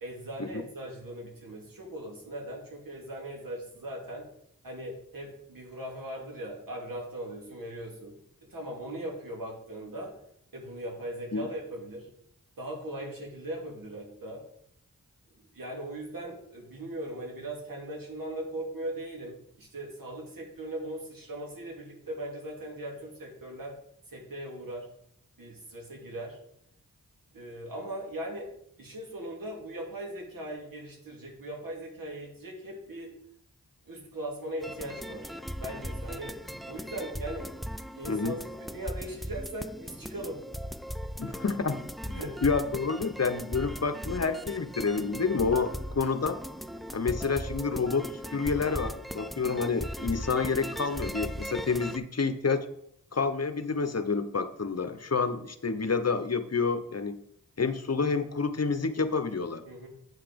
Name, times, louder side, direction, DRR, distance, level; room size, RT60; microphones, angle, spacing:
voice 1, 0.0-4.3 4.6-8.2 8.5-10.1 10.5-12.1 12.6-14.4 15.3-23.7 24.1-24.9 25.4-26.4 27.3-28.5 28.8-33.1 33.9-35.3 35.6-36.4 36.6-37.5 38.0-40.4 42.1-42.4 59.7-59.9, right 1 dB, 90° right, -1 dB, 2.4 m, -39 dB
sound 1, 34.6-52.0, equal, ahead, 0.4 m, -38 dB
voice 2, 38.1-38.4 41.2-46.4 46.9-52.7 53.1-57.2 57.6-59.6, left 4 dB, 50° left, 11 dB, 0.9 m, -29 dB
9.2 x 5.7 x 5.2 m, 0.72 s
cardioid pair, 45°, 33 cm